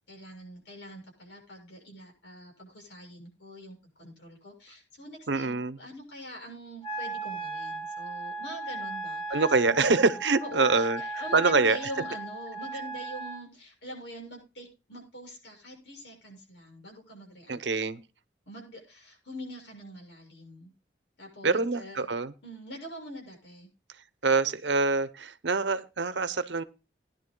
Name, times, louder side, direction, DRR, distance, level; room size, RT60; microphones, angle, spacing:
voice 1, 0.1-10.0 10.4-17.6 18.5-20.7 21.2-22.1 22.4-23.7, equal, 90° left, 1 dB, 6.8 m, -44 dB
voice 2, 5.3-5.8 9.3-11.0 11.3-11.8 17.5-18.0 21.4-22.3 24.2-26.6, right 4 dB, 85° right, 15 dB, 0.8 m, -25 dB
Wind instrument woodwind instrument, 6.8-13.4, right 2 dB, 30° left, 2.3 m, -37 dB
19.5 x 10.5 x 2.2 m, 0.29 s
head